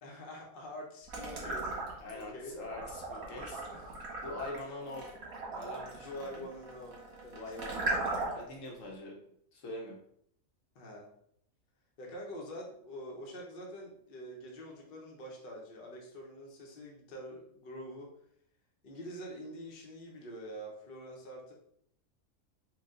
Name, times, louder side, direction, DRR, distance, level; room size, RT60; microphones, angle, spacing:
voice 1, 0.0-2.6 3.3-3.4 3.7-3.8 5.9-7.0 7.2-8.2 10.7-11.1 12.0-18.1 18.8-21.5, equal, 45° left, -1 dB, 0.9 m, -46 dB
sound 1, 1.1-2.2 2.6-8.5, right 2 dB, 80° right, 1.7 m, -38 dB
voice 2, 2.0-3.9 4.2-5.1 5.5-6.5 7.3-9.2 9.5-10.0, left 2 dB, 70° left, -1 dB, 1.2 m, -44 dB
4.7 x 2.3 x 3.7 m, 0.67 s
omnidirectional pair, 1.5 m